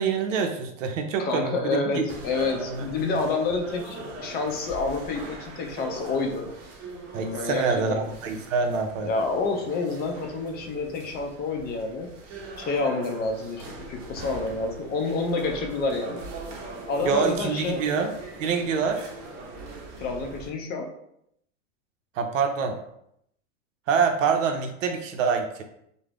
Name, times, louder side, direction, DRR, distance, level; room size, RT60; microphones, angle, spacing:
voice 1, 0.0-2.1 2.7-2.8 7.1-9.1 17.0-18.1 18.4-19.0 22.2-22.8 23.9-25.6, right 5 dB, 85° right, 5 dB, 0.5 m, -26 dB
voice 2, 1.2-6.5 7.3-8.0 9.0-12.1 12.6-16.2 16.9-17.9 20.0-20.9, left 3 dB, 25° left, 3 dB, 0.4 m, -28 dB
sound 1, 2.1-20.5, right 3 dB, 45° right, 0.8 m, -41 dB
2.4 x 2.0 x 3.2 m, 0.75 s
hypercardioid pair, 115°, 37 cm